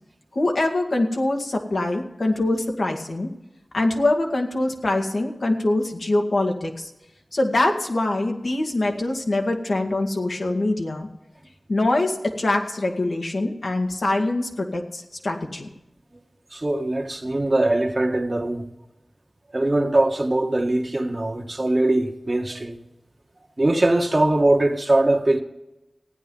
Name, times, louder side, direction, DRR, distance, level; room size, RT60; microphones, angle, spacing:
voice 1, 0.3-3.3 3.7-6.9 7.3-11.1 11.7-15.7, left 2 dB, 70° left, 2.0 m, -24 dB
voice 2, 16.5-18.6 19.5-22.8 23.6-25.4, right 2 dB, 45° right, 1.6 m, -21 dB
16.0 x 9.5 x 5.5 m
cardioid pair, 40°, 0 cm